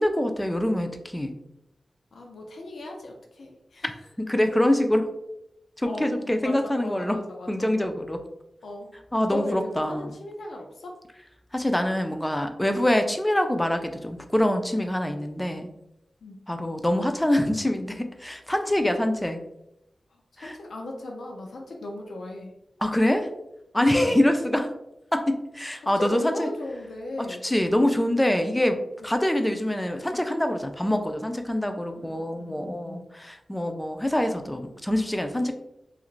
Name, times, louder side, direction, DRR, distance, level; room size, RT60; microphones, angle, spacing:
voice 1, 0.0-1.4 4.2-5.1 5.8-7.2 7.5-8.2 9.1-10.1 11.5-15.7 16.5-19.4 20.4-20.6 22.8-23.3 23.7-24.7 25.1-26.5 27.4-28.8 29.0-35.5, left 1 dB, 10° left, 6 dB, 0.3 m, -25 dB
voice 2, 2.1-3.9 5.8-7.7 8.6-8.9 9.3-11.0 16.2-16.4 20.3-22.5 23.9-24.2 26.0-27.4 31.9-33.0, left 1 dB, 90° left, 1 dB, 0.4 m, -37 dB
2.4 x 2.4 x 3.0 m, 0.83 s
wide cardioid pair, 105°, 0 cm